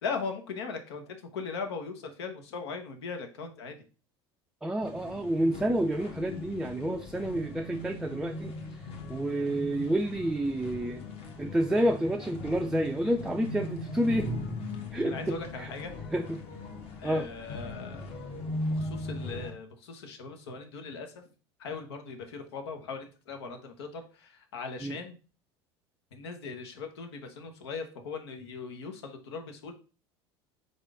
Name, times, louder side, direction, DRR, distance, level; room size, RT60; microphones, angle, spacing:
voice 1, 0.0-3.8 15.0-15.9 17.0-18.1 18.7-21.2 21.6-25.2 26.1-29.7, left 4 dB, 80° left, 6 dB, 0.9 m, -39 dB
voice 2, 4.6-8.5 9.1-11.0 11.4-14.4 14.9-15.7 16.1-16.4 17.0-17.3 24.8-25.0, right 1 dB, 5° right, 5 dB, 0.4 m, -29 dB
sound 1, 4.8-19.5, left 1 dB, 45° left, 1.3 m, -39 dB
3.9 x 3.6 x 3.5 m, 0.36 s
hypercardioid pair, 85°, 13 cm